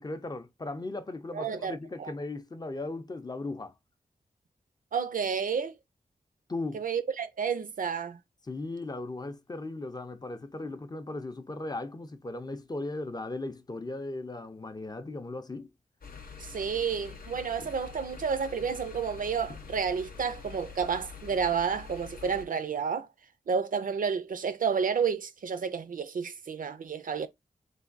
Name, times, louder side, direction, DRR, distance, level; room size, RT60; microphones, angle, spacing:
voice 1, 0.0-3.7 6.5-6.8 8.5-15.7, left 2 dB, 25° left, 0.4 m, -37 dB
voice 2, 1.3-2.1 4.9-5.7 6.7-8.2 16.4-23.1 23.5-27.3, right 6 dB, 65° right, 0.4 m, -30 dB
sound 1, 16.0-22.5, left 5 dB, 80° left, 0.7 m, -45 dB
3.3 x 2.2 x 2.5 m
wide cardioid pair, 70°, 15 cm